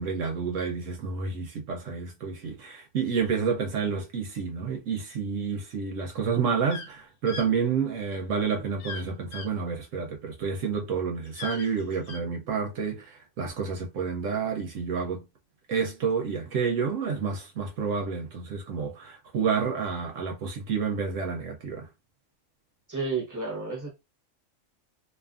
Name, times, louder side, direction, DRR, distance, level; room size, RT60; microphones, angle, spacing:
voice 1, 0.0-15.2 15.7-21.9, right 6 dB, 70° right, 1.0 m, -29 dB
sound 1, 6.6-6.9 7.3-7.5 8.8-9.0 9.3-9.5 11.2-12.2, left 5 dB, 75° left, 1.0 m, -39 dB
voice 2, 22.9-23.9, right 4 dB, 15° right, 0.7 m, -31 dB
2.6 x 2.4 x 2.4 m
omnidirectional pair, 1.4 m